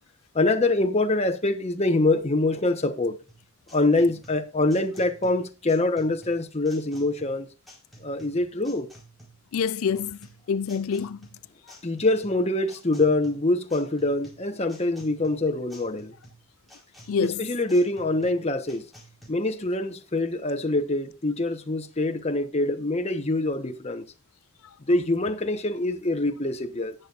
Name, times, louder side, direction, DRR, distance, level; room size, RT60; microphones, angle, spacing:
voice 1, 0.3-3.2 3.7-7.5 8.0-8.9 11.8-16.1 17.5-18.8 19.3-24.0 24.9-26.9, left 2 dB, 30° left, 1.1 m, -24 dB
sound 1, 3.3-19.3, right 1 dB, ahead, 4.6 m, -52 dB
voice 2, 9.5-10.2 10.5-11.3 11.7-11.8 17.1-17.5 24.6-24.7, left 6 dB, 80° left, 0.4 m, -27 dB
18.5 x 7.2 x 2.5 m
head